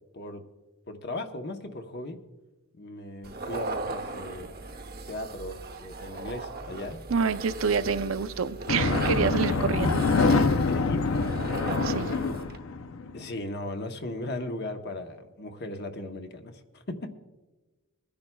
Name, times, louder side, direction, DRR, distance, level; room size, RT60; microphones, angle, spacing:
voice 1, 0.9-2.2 2.8-4.5 5.1-7.0 10.7-11.3 12.1-12.3 13.1-17.1, left 1 dB, 50° left, 5 dB, 1.0 m, -37 dB
sound 1, 3.2-12.6, right 3 dB, 45° right, 1.0 m, -37 dB
voice 2, 7.1-10.0 11.8-12.1, right 5 dB, 70° right, 12 dB, 0.5 m, -27 dB
sound 2, 8.7-13.2, left 4 dB, 65° left, 0.6 m, -25 dB
25.0 x 10.5 x 2.3 m, 1.2 s
head